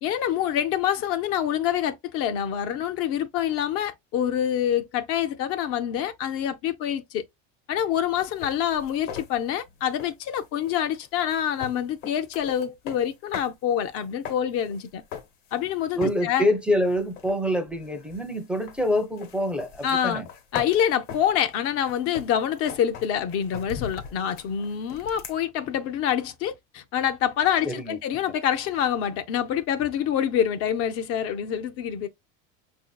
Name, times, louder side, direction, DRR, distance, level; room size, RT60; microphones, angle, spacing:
voice 1, 0.0-7.2 7.7-15.0 15.5-16.4 19.8-20.2 20.5-32.1, left 9 dB, 50° left, 0.5 m, -26 dB
sound 1, 8.2-13.5 13.8-15.7 16.0-16.4 16.8-25.4, left 7 dB, 75° left, 1.2 m, -40 dB
voice 2, 16.0-20.3 27.6-28.0, equal, 5° right, 0.5 m, -26 dB
5.6 x 2.7 x 2.2 m
supercardioid pair, 130°, 31 cm